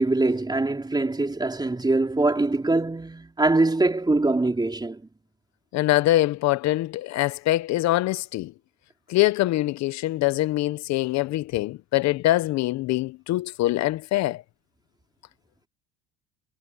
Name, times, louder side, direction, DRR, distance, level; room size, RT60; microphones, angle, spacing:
voice 1, 0.0-5.0, right 2 dB, 15° right, 4.4 m, -23 dB
voice 2, 5.7-8.5 9.1-14.4, left 16 dB, 60° left, 1.1 m, -24 dB
supercardioid pair, 80°, 31 cm